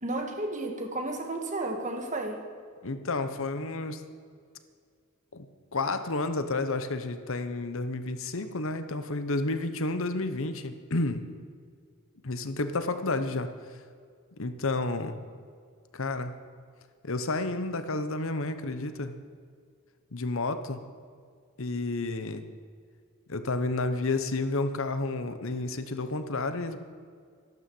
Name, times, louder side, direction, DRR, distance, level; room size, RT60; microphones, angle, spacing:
voice 1, 0.0-2.5, right 2 dB, 35° right, 4 dB, 1.9 m, -32 dB
voice 2, 2.8-4.0 5.3-5.5 5.7-11.4 12.2-13.5 14.4-15.2 15.9-16.3 17.0-19.2 20.1-20.8 21.6-22.5 23.3-26.8, left 2 dB, 65° left, 10 dB, 1.0 m, -31 dB
13.0 x 12.0 x 7.8 m, 2.1 s
head